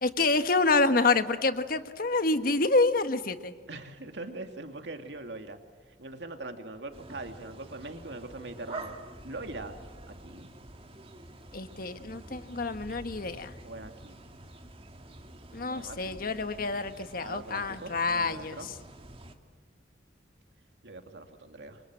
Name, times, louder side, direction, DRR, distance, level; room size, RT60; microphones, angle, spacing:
voice 1, 0.0-3.5 11.5-13.5 15.5-18.6, left 3 dB, 55° left, 9 dB, 1.4 m, -27 dB
voice 2, 3.7-5.6 6.0-9.0 9.2-9.8 10.1-10.5 13.6-14.2 15.7-16.3 17.2-18.7 20.8-21.8, right 2 dB, 70° right, 5 dB, 2.6 m, -42 dB
sound 1, 6.9-19.4, right 2 dB, 30° right, 2.2 m, -47 dB
29.5 x 25.0 x 7.7 m, 1.5 s
head